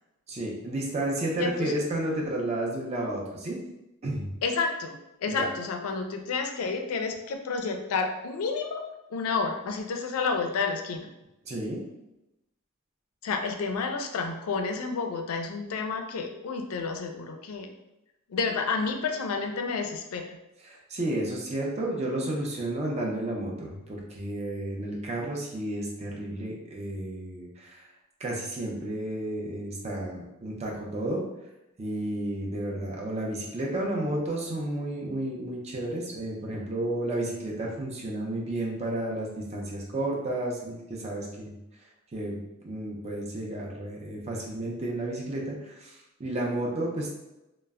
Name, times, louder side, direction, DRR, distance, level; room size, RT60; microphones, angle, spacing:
voice 1, 0.3-3.6 4.0-4.3 5.3-5.5 11.5-11.8 20.6-27.9 28.2-31.2 31.8-41.5 42.1-47.1, right 1 dB, 30° right, -2 dB, 0.5 m, -32 dB
voice 2, 1.4-1.7 4.4-8.8 9.1-11.1 13.2-17.7 18.3-20.4, left 4 dB, 85° left, 4 dB, 0.4 m, -30 dB
2.1 x 2.0 x 3.4 m, 0.93 s
head